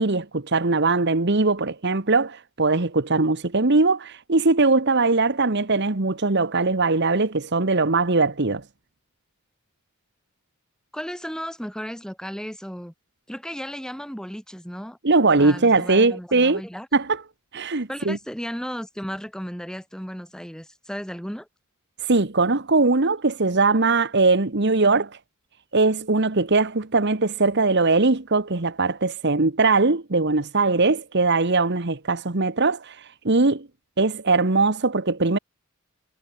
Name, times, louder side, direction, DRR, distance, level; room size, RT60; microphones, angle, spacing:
voice 1, 0.0-8.6 15.0-16.6 16.9-17.2 17.5-18.2 22.0-25.1 25.7-33.7 34.0-35.4, right 3 dB, 50° right, 1.4 m, -21 dB
voice 2, 10.9-12.9 13.3-15.0 15.4-16.9 17.9-21.5, equal, 5° left, 5.6 m, -34 dB
head